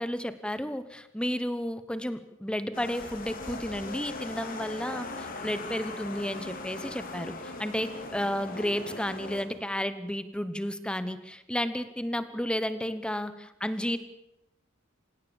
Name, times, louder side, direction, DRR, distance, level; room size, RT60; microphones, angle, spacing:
voice 1, 0.0-14.0, equal, 5° left, 12 dB, 1.0 m, -32 dB
sound 1, 2.7-9.4, left 3 dB, 45° left, 3.3 m, -40 dB
26.5 x 17.5 x 7.1 m, 0.88 s
head